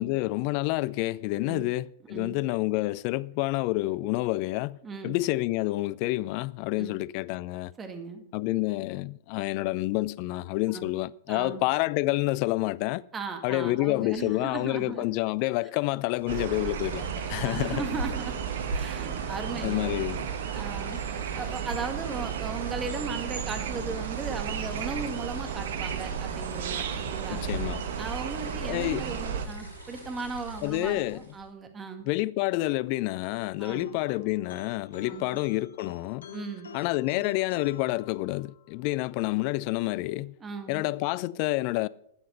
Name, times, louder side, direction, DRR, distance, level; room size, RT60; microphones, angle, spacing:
voice 1, 0.0-4.8 5.0-7.7 8.3-13.0 13.4-17.8 19.6-20.3 27.3-27.8 28.6-29.1 30.6-31.2 32.1-36.3 36.7-40.4 40.7-41.9, left 19 dB, 40° left, 0.4 m, -28 dB
voice 2, 4.8-5.2 6.8-6.9 7.8-8.2 10.7-10.9 11.3-11.6 13.1-15.1 17.4-18.4 18.7-20.0 20.5-21.0 21.3-27.5 28.0-32.1 33.6-33.9 35.1-35.4 36.3-36.7 40.4-40.9, right 4 dB, 20° right, 2.0 m, -37 dB
sound 1, 16.1-31.5, right 1 dB, 80° right, 4.5 m, -42 dB
sound 2, 16.3-29.5, right 8 dB, 55° right, 1.2 m, -33 dB
sound 3, 33.6-38.7, left 6 dB, 70° left, 1.1 m, -46 dB
12.5 x 7.7 x 6.8 m
figure-of-eight pair, 100°, 0 cm